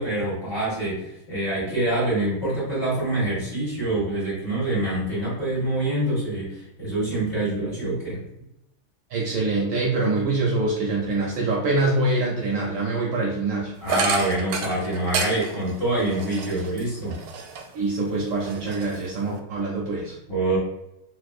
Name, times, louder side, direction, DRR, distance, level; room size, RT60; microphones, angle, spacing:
voice 1, 0.0-8.2 13.8-17.2 20.3-20.6, right 1 dB, 30° left, -9 dB, 1.5 m, -25 dB
voice 2, 9.1-13.7 17.7-20.2, right 2 dB, 75° right, -2 dB, 1.2 m, -24 dB
sound 1, 13.9-17.8 18.2-19.4, right 5 dB, 90° right, 1.5 m, -30 dB
3.3 x 3.0 x 2.4 m, 0.83 s
omnidirectional pair, 2.3 m